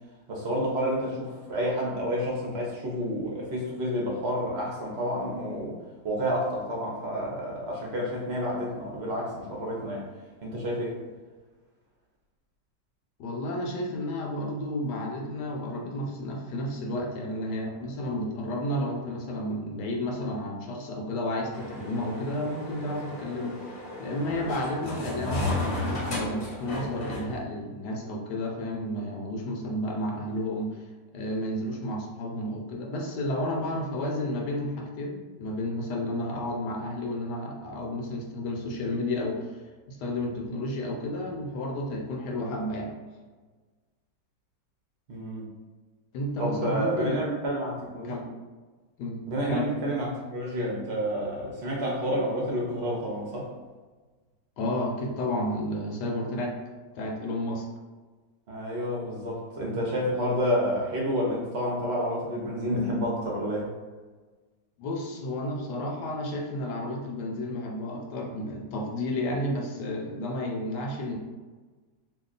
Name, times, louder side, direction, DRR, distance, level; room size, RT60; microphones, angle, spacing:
voice 1, 0.3-5.8 6.0-10.1 10.4-10.9 45.1-45.4 46.4-48.1 49.3-53.5 58.5-63.7, equal, 55° right, -3 dB, 0.8 m, -29 dB
voice 2, 13.2-23.7 24.0-30.8 31.1-39.5 39.9-42.9 46.1-47.2 48.0-48.3 49.0-49.2 49.5-49.7 54.6-56.6 56.9-57.7 64.8-71.2, left 1 dB, 75° left, 1 dB, 1.2 m, -31 dB
sound 1, 21.5-27.4, left 2 dB, 50° left, 0.9 m, -34 dB
2.9 x 2.3 x 3.8 m, 1.3 s
omnidirectional pair, 1.9 m